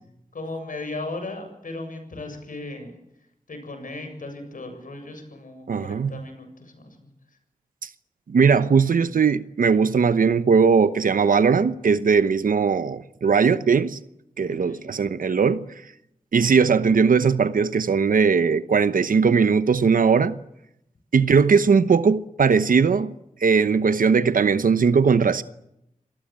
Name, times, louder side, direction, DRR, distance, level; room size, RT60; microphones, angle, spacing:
voice 1, 0.3-2.9 3.5-7.1 14.5-14.9, left 2 dB, 80° left, 7.4 m, -36 dB
voice 2, 5.7-6.2 7.8-7.9 8.3-14.0 14.4-15.7 16.3-20.3 21.1-23.1 23.4-25.4, right 5 dB, 90° right, 1.0 m, -19 dB
27.0 x 19.5 x 8.9 m
wide cardioid pair, 90°, 14 cm